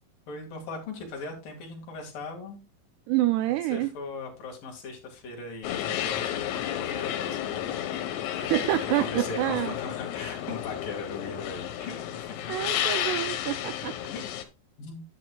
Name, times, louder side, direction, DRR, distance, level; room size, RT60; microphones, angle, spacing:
voice 1, 0.3-2.6 3.4-7.8 8.8-12.7 14.1-14.2 14.8-15.0, left 3 dB, 55° left, 3.4 m, -39 dB
voice 2, 3.1-3.9 8.4-9.7 12.5-14.0, right 16 dB, 85° right, 2.4 m, -27 dB
sound 1, 5.6-14.4, left 11 dB, 85° left, 3.5 m, -32 dB
10.5 x 9.7 x 2.3 m
omnidirectional pair, 5.2 m